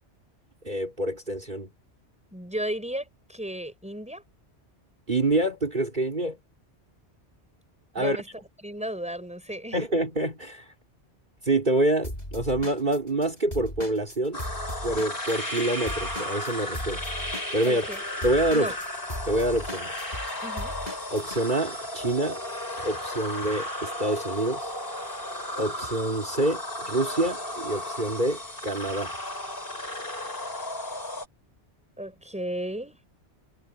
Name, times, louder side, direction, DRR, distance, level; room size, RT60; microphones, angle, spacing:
voice 1, 0.6-1.7 5.1-6.4 7.9-8.2 9.7-10.7 11.4-14.4 14.8-17.0 17.5-17.9 18.2-18.7 19.3-20.0 21.1-22.4 22.8-24.7 25.6-29.1, right 1 dB, 45° right, 3.9 m, -26 dB
voice 2, 2.3-4.2 8.0-8.3 8.6-9.8 17.7-18.0 18.5-18.8 20.4-20.8 32.0-33.0, right 1 dB, 5° right, 5.6 m, -34 dB
Drum kit / Drum, 12.0-15.6 15.9-21.4, left 1 dB, 35° left, 6.1 m, -37 dB
sound 1, 14.3-31.2, left 1 dB, 55° left, 6.7 m, -34 dB
omnidirectional pair, 1.2 m